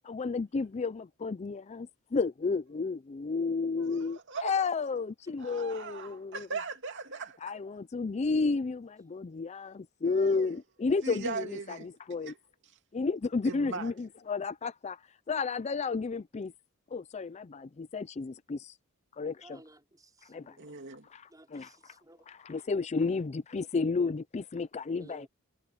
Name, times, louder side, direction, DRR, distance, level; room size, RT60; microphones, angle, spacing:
voice 1, 0.0-6.5 7.4-12.3 12.9-15.0 15.3-16.5 16.9-18.7 19.2-19.6 20.3-20.6 21.1-21.7 22.3-25.3, left 4 dB, 30° left, 0.4 m, -32 dB
voice 2, 3.8-4.6 5.4-7.4 10.0-10.5 11.0-11.9 12.2-12.4 13.4-13.9 20.6-21.1, right 4 dB, 60° right, 2.6 m, -39 dB
voice 3, 19.4-20.8 21.3-22.3 22.6-22.7 24.9-25.3, right 1 dB, 15° right, 5.2 m, -55 dB
head